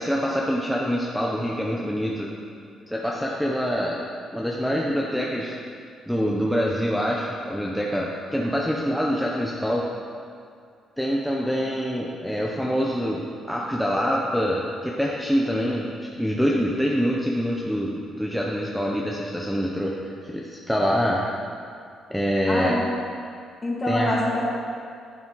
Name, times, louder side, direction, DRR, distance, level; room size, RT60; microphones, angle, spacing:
voice 1, 0.0-2.3 2.9-4.0 4.3-5.6 6.1-9.9 11.0-21.2 22.1-22.8 23.9-24.1, equal, ahead, -3 dB, 0.9 m, -25 dB
voice 2, 22.5-22.8 23.6-24.7, left 1 dB, 30° left, -3 dB, 2.2 m, -25 dB
10.5 x 6.9 x 4.0 m, 2.3 s
cardioid pair, 90°, 0 cm